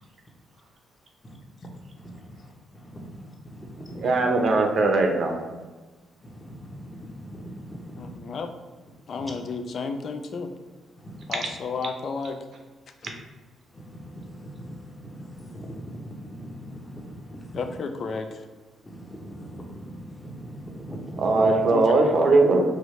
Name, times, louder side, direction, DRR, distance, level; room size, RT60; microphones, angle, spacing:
voice 1, 1.9-4.2 6.2-8.2 9.1-9.2 11.0-11.3 13.7-17.6 18.8-21.5, equal, 20° left, 0 dB, 0.8 m, -40 dB
voice 2, 4.0-5.3 21.2-22.6, right 3 dB, 55° right, 2 dB, 0.8 m, -20 dB
voice 3, 8.0-8.5 9.1-10.5 11.3-12.4 17.5-18.4 21.7-21.9, left 4 dB, 55° left, 7 dB, 0.5 m, -32 dB
4.7 x 2.7 x 3.1 m, 1.3 s
cardioid pair, 90°, 0 cm